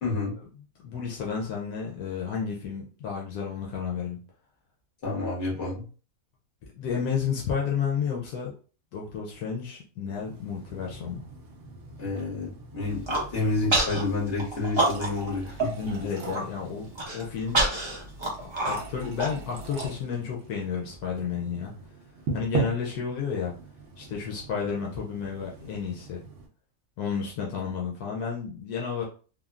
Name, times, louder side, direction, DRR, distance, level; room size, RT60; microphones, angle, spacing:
voice 1, 0.0-0.3 5.0-5.8 12.0-15.9, left 3 dB, 50° left, -4 dB, 1.5 m, -29 dB
voice 2, 0.6-4.2 6.8-8.5 8.9-11.2 15.7-17.6 18.4-21.7 22.3-23.5 24.0-26.2 27.0-29.0, left 6 dB, 80° left, -2 dB, 1.1 m, -31 dB
sound 1, 10.2-26.5, right 5 dB, 65° right, 0.9 m, -40 dB
Human voice, 12.8-13.3 13.7-14.0 14.4-15.3 15.6-15.7 16.1-16.4 16.9-19.8, right 2 dB, 30° right, 0.5 m, -27 dB
3.5 x 2.1 x 2.3 m, 0.39 s
omnidirectional pair, 1.6 m